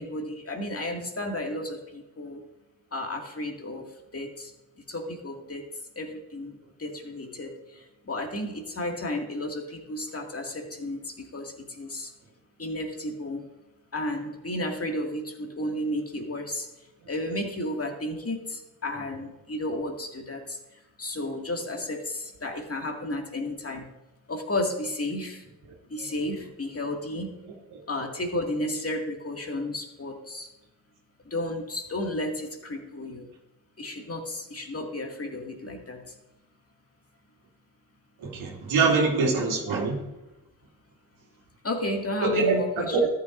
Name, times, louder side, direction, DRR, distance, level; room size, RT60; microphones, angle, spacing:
voice 1, 0.0-2.4 2.9-3.8 4.1-4.5 4.9-5.6 6.0-12.1 12.6-13.4 13.9-16.7 17.1-20.6 21.0-23.9 24.3-25.4 25.9-27.3 27.9-30.5 31.3-33.3 33.8-36.0 41.6-43.1, left 1 dB, 30° left, 2 dB, 2.3 m, -33 dB
voice 2, 38.2-39.9 42.2-42.6 42.9-43.1, right 4 dB, 75° right, -2 dB, 2.5 m, -23 dB
13.5 x 9.0 x 2.6 m, 1.0 s
hypercardioid pair, 40°, 49 cm